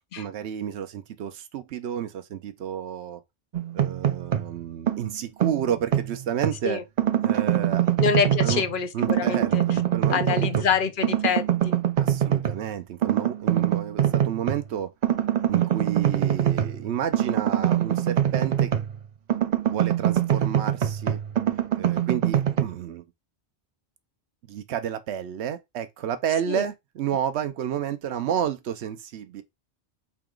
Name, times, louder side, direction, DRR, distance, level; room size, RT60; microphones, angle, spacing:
voice 1, 0.2-3.2 3.7-6.8 7.2-7.9 8.4-8.6 8.9-10.7 12.0-14.9 15.5-18.8 19.7-21.2 21.8-23.0 24.5-29.4, right 9 dB, 80° right, 0.9 m, -31 dB
sound 1, 3.5-4.5 4.9-6.6 7.0-8.7 9.0-10.8 11.0-12.6 13.0-14.6 15.0-19.0 19.3-22.6, right 11 dB, 55° right, 0.5 m, -24 dB
voice 2, 8.0-9.8 10.1-11.8 26.5-26.6, left 6 dB, 55° left, 0.8 m, -26 dB
4.7 x 2.9 x 3.7 m
omnidirectional pair, 1.1 m